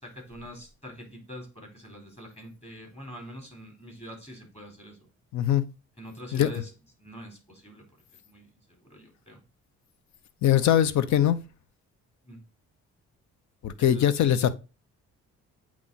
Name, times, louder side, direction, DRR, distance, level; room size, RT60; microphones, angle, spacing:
voice 1, 0.0-5.1 6.0-6.7 7.0-7.8 8.3-9.4 12.2-12.4 13.8-14.1, equal, 20° left, 3.7 m, -44 dB
voice 2, 5.3-5.6 6.3-6.5 10.4-11.4 13.6-14.6, left 10 dB, 70° left, 0.7 m, -22 dB
8.6 x 3.1 x 4.0 m
cardioid pair, 90°, 30 cm